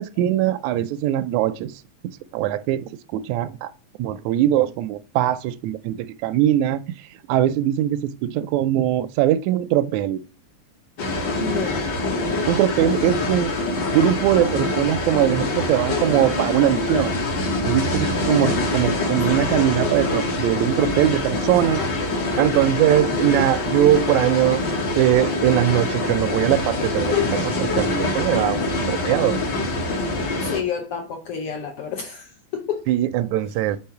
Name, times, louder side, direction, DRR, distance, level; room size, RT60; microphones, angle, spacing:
voice 1, 0.0-1.7 2.3-3.7 4.0-6.8 7.3-10.2 12.5-13.5 13.9-17.1 17.6-21.8 22.4-24.6 24.9-28.6 28.9-29.4 32.9-33.8, right 12 dB, 80° right, 1.7 m, -21 dB
sound 1, 11.0-30.6, left 2 dB, 55° left, 1.2 m, -24 dB
voice 2, 11.4-12.0 12.8-13.4 18.2-18.6 30.4-32.9 33.5-33.6, left 7 dB, 70° left, 1.4 m, -30 dB
5.5 x 3.6 x 5.7 m
omnidirectional pair, 3.5 m